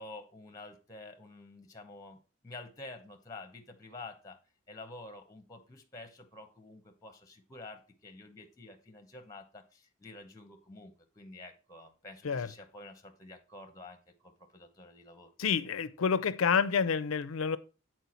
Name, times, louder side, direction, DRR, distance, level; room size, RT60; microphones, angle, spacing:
voice 1, 0.0-2.2 2.4-4.4 4.7-15.3, left 2 dB, 15° left, 0.8 m, -49 dB
voice 2, 15.4-17.6, left 6 dB, 75° left, 0.5 m, -28 dB
8.1 x 4.5 x 4.3 m
head